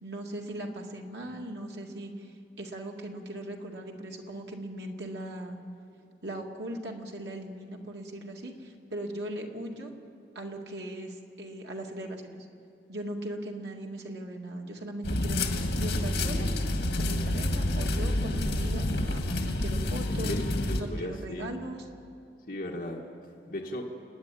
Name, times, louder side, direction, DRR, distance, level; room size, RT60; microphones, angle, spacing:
voice 1, 0.0-2.3 2.6-5.6 6.2-9.9 10.4-12.5 12.9-15.4 15.7-16.5 17.0-20.4 20.8-21.8, right 1 dB, 75° right, 1 dB, 2.1 m, -39 dB
sound 1, 15.0-20.8, left 1 dB, 80° left, 1.8 m, -28 dB
voice 2, 20.1-21.5 22.5-23.0 23.5-23.8, left 1 dB, 55° left, -2 dB, 1.7 m, -37 dB
30.0 x 10.0 x 9.1 m, 2.4 s
head